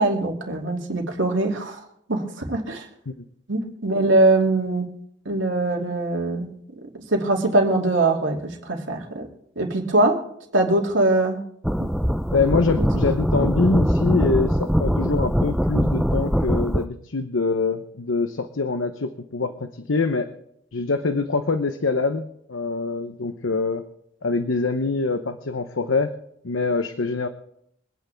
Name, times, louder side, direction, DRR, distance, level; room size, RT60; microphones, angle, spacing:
voice 1, 0.0-1.8 2.1-2.9 3.5-4.9 5.3-6.5 7.1-9.3 9.6-10.2 10.5-11.4 11.8-11.9 12.8-12.9, right 2 dB, 80° right, 1 dB, 2.6 m, -22 dB
War Noises (Distance Explosions), 11.6-16.8, equal, ahead, 0.4 m, -22 dB
voice 2, 12.3-20.3 20.7-23.8 24.2-26.1 26.4-27.3, left 3 dB, 90° left, 8 dB, 0.8 m, -24 dB
25.0 x 9.2 x 3.5 m, 0.72 s
head